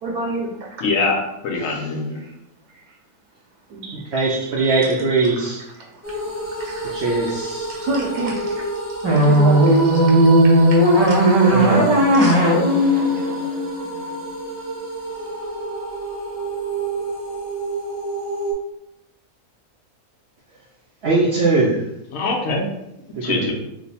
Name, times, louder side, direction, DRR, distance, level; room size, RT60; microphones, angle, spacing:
voice 1, 0.0-0.7 1.6-1.7 2.2-2.3 3.7-7.0 7.7-8.6 9.1-10.0 10.7-11.7 12.1-13.0, right 3 dB, 80° right, -1 dB, 1.2 m, -30 dB
voice 2, 0.8-2.2 22.1-22.7 23.2-23.5, left 3 dB, 65° left, 1 dB, 1.0 m, -23 dB
voice 3, 4.1-5.6 6.9-7.7 11.5-11.9 21.0-21.8 23.1-23.5, right 3 dB, 65° right, -4 dB, 0.7 m, -20 dB
sound 1, 6.0-18.5, right 2 dB, 10° right, 0.8 m, -30 dB
sound 2, 9.0-14.2, right 1 dB, 35° right, 0.4 m, -15 dB
3.1 x 2.2 x 4.1 m, 0.83 s
omnidirectional pair, 1.6 m